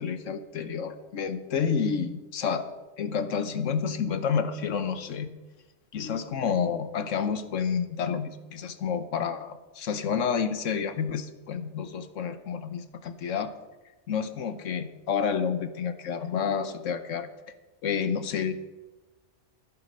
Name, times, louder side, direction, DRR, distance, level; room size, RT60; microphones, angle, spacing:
voice 1, 0.0-2.7 3.0-5.3 5.9-13.5 14.1-17.3 17.8-18.5, left 6 dB, 90° left, 10 dB, 1.3 m, -29 dB
12.5 x 11.0 x 5.3 m, 1.1 s
omnidirectional pair, 1.3 m